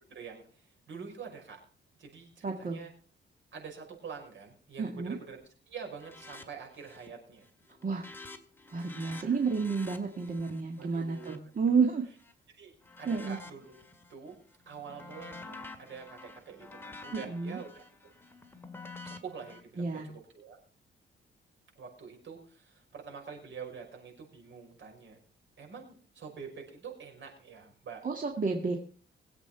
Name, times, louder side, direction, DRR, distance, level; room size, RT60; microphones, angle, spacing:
voice 1, 0.0-1.6 2.0-2.9 3.5-5.4 5.7-7.5 9.0-9.4 10.8-11.5 12.6-13.8 14.1-14.4 14.7-17.8 19.0-20.6 21.8-25.2 25.6-28.0, right 6 dB, 65° right, 2 dB, 5.7 m, -46 dB
voice 2, 2.4-2.8 4.8-5.2 7.8-8.1 8.7-12.0 13.1-13.4 17.1-17.6 19.8-20.1 28.0-28.8, right 5 dB, 40° right, 2 dB, 2.0 m, -30 dB
sound 1, 6.0-6.5 6.7-7.2 7.5-12.3 12.8-14.1 14.5-19.6, left 3 dB, 10° left, 2.0 m, -49 dB
21.5 x 8.1 x 4.5 m, 0.41 s
cardioid pair, 105°, 21 cm